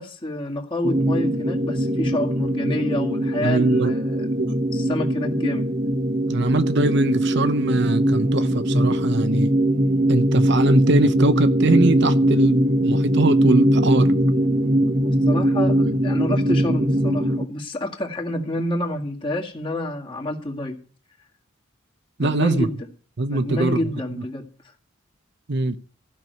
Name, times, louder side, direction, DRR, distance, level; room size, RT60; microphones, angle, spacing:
voice 1, 0.0-5.7 15.0-20.8 22.2-22.8 23.3-24.5, left 1 dB, 25° left, 2.0 m, -28 dB
sound 1, 0.8-17.4, right 1 dB, 35° right, 1.0 m, -21 dB
voice 2, 3.4-4.0 4.4-4.5 6.3-9.5 10.1-14.1 22.2-22.7 23.2-23.9 25.5-25.8, right 2 dB, 55° right, 0.8 m, -22 dB
15.0 x 6.1 x 9.3 m
head